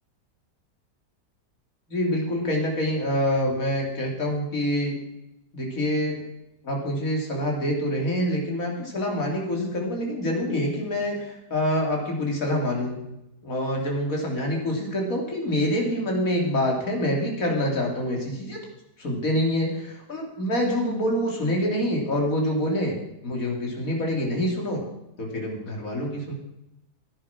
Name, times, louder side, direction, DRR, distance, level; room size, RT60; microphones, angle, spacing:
voice 1, 1.9-5.0 5.5-6.2 6.6-13.0 13.4-18.6 19.0-23.0 23.2-24.8 25.2-26.3, left 1 dB, 50° left, 0 dB, 3.5 m, -26 dB
15.5 x 9.9 x 6.0 m, 0.88 s
omnidirectional pair, 1.8 m